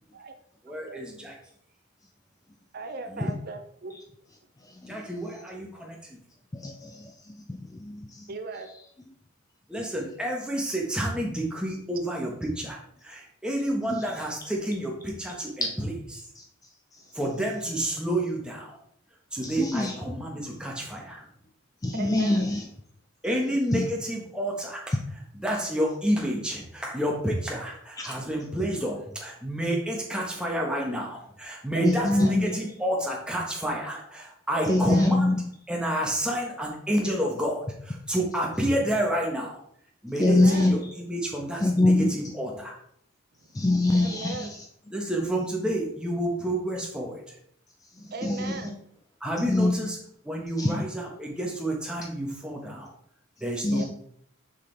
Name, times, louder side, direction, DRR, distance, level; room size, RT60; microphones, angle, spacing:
voice 1, 0.6-1.3 3.1-3.3 4.8-6.2 9.7-16.2 17.1-18.8 19.3-21.3 23.2-25.0 25.3-35.4 35.7-39.6 40.0-42.7 44.9-47.4 49.2-50.0 50.2-52.9 53.4-53.9, right 1 dB, 5° right, -1 dB, 1.2 m, -29 dB
voice 2, 2.7-4.0 8.3-8.7 21.9-22.5 31.7-32.4 34.5-35.1 40.2-40.7 43.9-44.5 48.0-48.8 53.7-53.8, right 3 dB, 45° right, 7 dB, 0.4 m, -37 dB
voice 3, 4.6-5.0 6.5-8.3 13.9-14.0 15.6-15.7 16.4-16.5 16.9-17.0 19.4-19.9 21.8-22.6 23.7-23.9 28.0-28.1 31.8-32.5 34.7-35.4 40.2-40.8 41.6-42.1 43.5-44.6 48.0-48.7 49.5-49.7 50.6-50.8 53.6-53.8, left 2 dB, 15° left, 4 dB, 0.4 m, -24 dB
6.6 x 5.7 x 3.4 m, 0.68 s
head